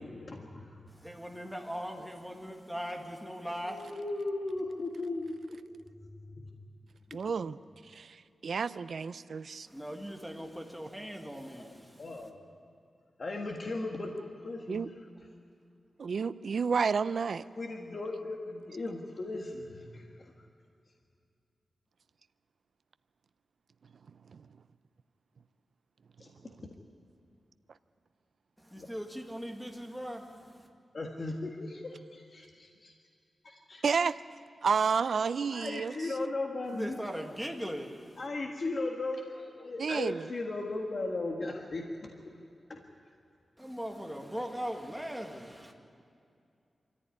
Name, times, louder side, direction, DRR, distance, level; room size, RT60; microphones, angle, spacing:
voice 1, 0.0-0.8 3.7-5.6 6.1-6.4 12.0-12.4 13.2-14.9 17.6-20.3 26.2-26.3 28.8-28.9 30.9-32.9 33.4-33.8 35.5-37.0 38.2-42.1 42.7-42.8, left 2 dB, 45° left, 1 dB, 1.7 m, -37 dB
voice 2, 0.9-3.9 9.7-12.3 28.6-30.7 36.7-38.2 43.6-45.7, equal, ahead, 1 dB, 2.0 m, -40 dB
voice 3, 7.1-7.6 7.9-9.7 14.7-14.9 16.0-17.4 24.3-24.4 33.8-34.2 34.6-35.9 39.8-40.3, right 5 dB, 65° right, 13 dB, 0.5 m, -30 dB
24.5 x 14.5 x 9.6 m, 2.5 s
wide cardioid pair, 150°, 0 cm